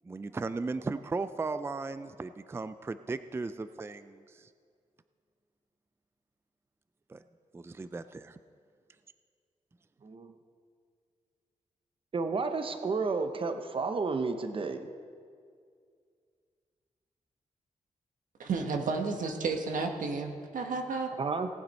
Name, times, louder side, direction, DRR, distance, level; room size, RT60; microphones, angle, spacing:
voice 1, 0.1-4.5 7.1-7.2 7.5-8.4, right 3 dB, 20° right, 12 dB, 0.4 m, -36 dB
voice 2, 10.0-10.3 12.1-14.9 21.2-21.5, right 4 dB, 40° right, 8 dB, 0.8 m, -31 dB
voice 3, 18.4-21.1, right 4 dB, 90° right, 4 dB, 1.3 m, -32 dB
18.0 x 8.8 x 4.2 m, 2.2 s
wide cardioid pair, 100°, 13 cm